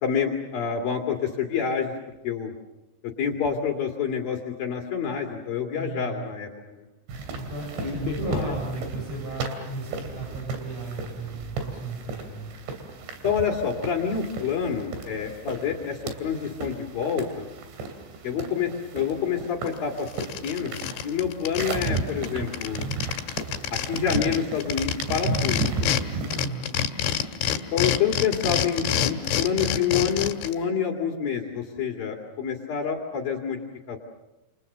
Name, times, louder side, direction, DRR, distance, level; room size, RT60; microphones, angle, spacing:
voice 1, 0.0-1.9 2.2-2.5 3.2-6.8 7.8-8.5 13.2-17.5 18.2-20.1 20.4-22.9 23.9-26.2 27.7-33.6 33.9-34.0, left 7 dB, 55° left, 2 dB, 3.8 m, -28 dB
voice 2, 5.7-6.3 7.3-12.5 26.3-26.7, right 2 dB, 35° right, -3 dB, 8.2 m, -35 dB
sound 1, 7.1-26.4, right 3 dB, 75° right, 5.1 m, -34 dB
sound 2, 19.7-19.8 20.1-22.0 22.2-22.3 22.5-26.0 26.3-30.5, left 9 dB, 85° left, 3.9 m, -27 dB
29.0 x 28.5 x 6.8 m, 1.0 s
omnidirectional pair, 5.2 m